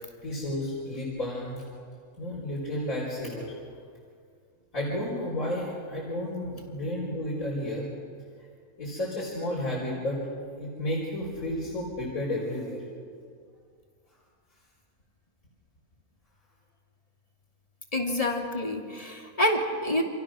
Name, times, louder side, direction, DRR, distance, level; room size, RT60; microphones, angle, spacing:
voice 1, 0.2-1.6 2.2-3.5 4.7-7.9 8.4-8.5 8.8-10.2 10.6-12.8, left 1 dB, 70° left, -4 dB, 5.3 m, -32 dB
voice 2, 17.9-20.0, left 1 dB, 25° left, 1 dB, 2.8 m, -27 dB
29.0 x 28.0 x 6.4 m, 2.1 s
omnidirectional pair, 1.5 m